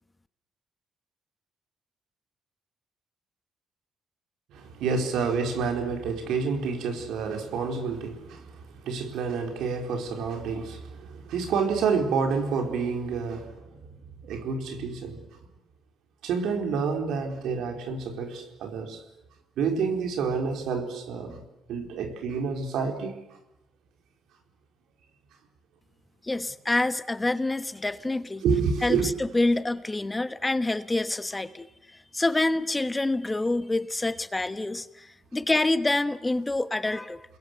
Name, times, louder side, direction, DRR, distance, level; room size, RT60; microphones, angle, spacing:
voice 1, 4.5-13.8 14.2-15.4 16.2-19.0 19.6-21.4 21.7-23.2 28.4-29.1, right 5 dB, 85° right, 4.4 m, -29 dB
voice 2, 26.2-28.4 28.8-37.2, left 2 dB, 15° left, 1.2 m, -27 dB
29.5 x 21.5 x 8.0 m
cardioid pair, 90°, 0 cm